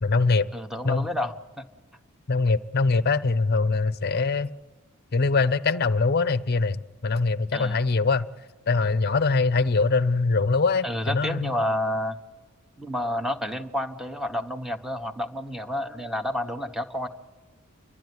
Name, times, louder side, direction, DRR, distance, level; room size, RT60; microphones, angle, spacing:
voice 1, 0.0-0.5 0.8-1.1 2.3-4.5 5.1-8.3 8.7-11.5, left 4 dB, 45° left, 0.6 m, -23 dB
voice 2, 0.5-1.6 7.5-7.8 10.8-12.2 12.8-17.1, left 1 dB, ahead, 1.0 m, -30 dB
29.0 x 12.0 x 9.6 m
head